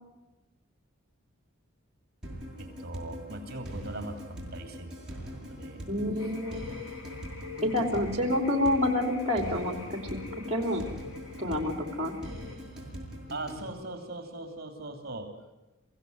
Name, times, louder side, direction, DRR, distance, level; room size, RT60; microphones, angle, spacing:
sound 1, 2.2-13.6, equal, 5° right, 6.5 m, -42 dB
voice 1, 2.6-5.0 5.5-5.8 6.2-6.3 13.3-15.3, right 2 dB, 45° right, 6 dB, 3.1 m, -40 dB
voice 2, 5.9-6.7 7.6-10.0 10.5-10.9 11.4-12.1, left 1 dB, 30° right, 6 dB, 3.2 m, -28 dB
sound 2, 6.2-12.6, left 6 dB, 75° left, 4.3 m, -44 dB
25.5 x 16.0 x 9.5 m, 1.1 s
head